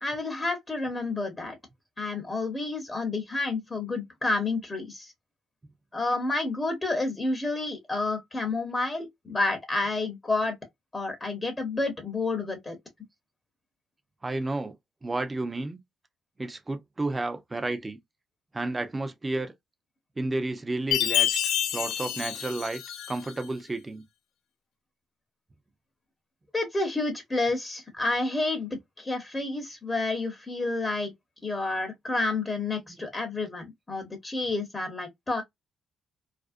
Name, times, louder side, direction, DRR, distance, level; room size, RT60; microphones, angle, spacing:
voice 1, 0.0-1.6 2.0-5.1 5.9-10.6 10.9-12.8 26.5-31.1 31.4-35.4, left 3 dB, 20° left, 0.7 m, -30 dB
voice 2, 14.2-14.7 15.0-15.8 16.4-18.0 18.5-19.5 20.2-22.8 23.1-24.0 32.9-33.1, right 2 dB, 20° right, 0.5 m, -31 dB
Chime, 20.9-23.4, left 11 dB, 85° left, 0.4 m, -28 dB
2.5 x 2.0 x 2.4 m
cardioid pair, 90°, 0 cm